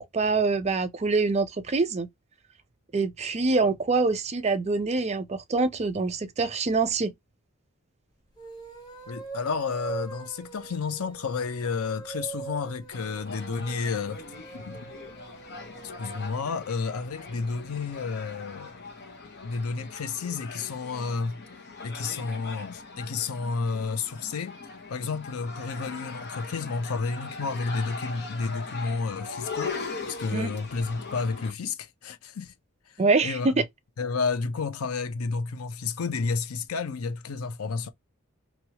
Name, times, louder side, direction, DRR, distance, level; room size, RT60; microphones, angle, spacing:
voice 1, 0.0-2.1 2.9-7.1 30.3-30.5 33.0-33.5, right 3 dB, 30° right, 0.5 m, -25 dB
sound 1, 8.3-16.4, right 5 dB, 20° left, 1.1 m, -42 dB
voice 2, 9.1-14.2 14.5-14.9 16.0-18.8 19.4-21.4 21.8-24.6 24.9-29.8 30.1-32.5 32.9-33.6 34.0-37.9, left 4 dB, 85° left, 0.6 m, -31 dB
sound 2, 12.9-31.5, left 4 dB, 50° left, 0.8 m, -40 dB
3.0 x 2.3 x 2.8 m
head